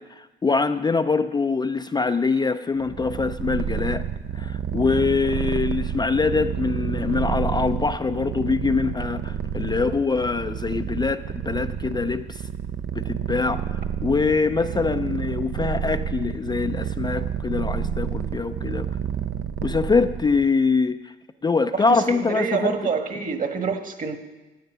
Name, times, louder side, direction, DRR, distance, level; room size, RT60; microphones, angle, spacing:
voice 1, 0.0-4.0 4.4-12.4 12.9-18.9 19.6-21.1 21.4-22.7, left 4 dB, 20° left, 8 dB, 0.4 m, -24 dB
Purr, 2.8-20.5, right 8 dB, 60° right, 0.6 m, -29 dB
voice 2, 21.7-24.2, right 5 dB, 40° right, 6 dB, 1.5 m, -26 dB
14.5 x 9.3 x 5.5 m, 1.1 s
cardioid pair, 90°, 20 cm